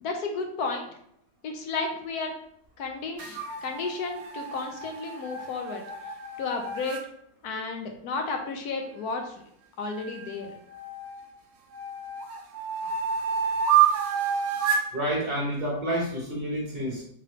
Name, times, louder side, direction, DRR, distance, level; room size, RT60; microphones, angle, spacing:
voice 1, 0.0-0.9 1.4-2.3 2.8-5.8 6.4-7.0 7.4-9.3 9.8-10.5, left 4 dB, 70° left, 3 dB, 1.1 m, -32 dB
sound 1, 3.2-7.0 10.0-11.2 11.7-14.9, right 7 dB, 75° right, 0.6 m, -28 dB
voice 2, 14.9-17.0, equal, 40° right, -4 dB, 0.9 m, -29 dB
3.7 x 3.0 x 3.2 m, 0.70 s
omnidirectional pair, 1.8 m